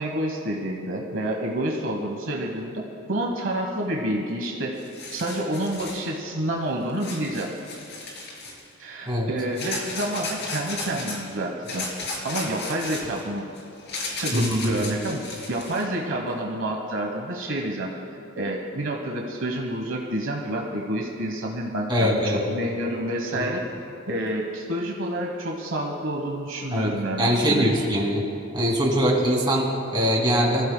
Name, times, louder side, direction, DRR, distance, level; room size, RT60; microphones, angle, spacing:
voice 1, 0.0-2.8 3.1-4.7 5.1-7.5 8.8-13.4 14.2-17.9 18.3-23.6 24.1-27.7 30.0-30.1, right 1 dB, 65° right, 0 dB, 1.1 m, -28 dB
sound 1, 4.4-4.5 4.7-6.0 7.0-8.7 9.5-11.2 11.6-15.8, left 3 dB, 55° left, 3.2 m, -34 dB
voice 2, 14.3-14.9 21.9-22.4 23.3-23.6 26.7-26.9 27.2-28.2 28.5-30.6, equal, 20° right, -2 dB, 2.4 m, -22 dB
23.5 x 15.0 x 2.2 m, 2.6 s
head